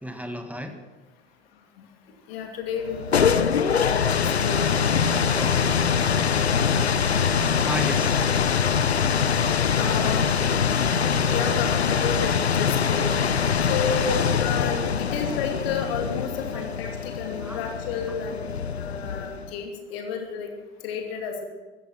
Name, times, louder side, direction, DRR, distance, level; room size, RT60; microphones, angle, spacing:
voice 1, 0.0-0.8 5.3-5.7 7.6-8.2 17.4-17.7, equal, 5° right, 6 dB, 1.8 m, -34 dB
voice 2, 2.3-4.6 6.1-7.0 7.5-7.7 8.6-8.8 9.7-10.3 11.3-13.1 13.7-18.5 18.8-20.5 20.8-21.4, left 6 dB, 65° left, 4 dB, 2.7 m, -32 dB
sound 1, 2.8-19.5, left 6 dB, 85° left, 0.6 m, -23 dB
15.0 x 14.5 x 6.0 m, 1.3 s
figure-of-eight pair, 65°, 31 cm